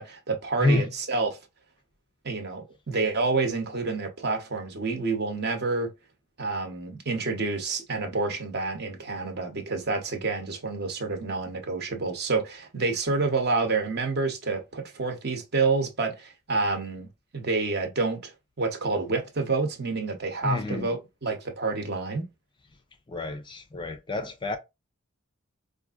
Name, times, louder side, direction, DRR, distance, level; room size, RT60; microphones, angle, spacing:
voice 1, 0.0-1.4 2.2-5.9 6.4-17.1 17.3-18.3 18.6-22.3, right 3 dB, 50° right, 0.9 m, -28 dB
voice 2, 20.4-21.0 23.1-24.6, left 2 dB, 20° left, 0.4 m, -28 dB
4.7 x 2.5 x 2.4 m
head